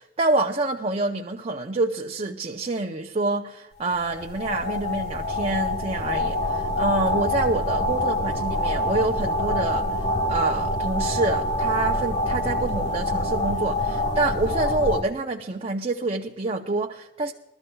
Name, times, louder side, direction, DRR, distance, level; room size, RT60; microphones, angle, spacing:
voice 1, 0.0-17.3, right 2 dB, 30° right, 1 dB, 0.6 m, -27 dB
sound 1, 3.9-15.0, left 1 dB, 40° left, 1.5 m, -26 dB
21.5 x 13.0 x 2.3 m, 0.92 s
head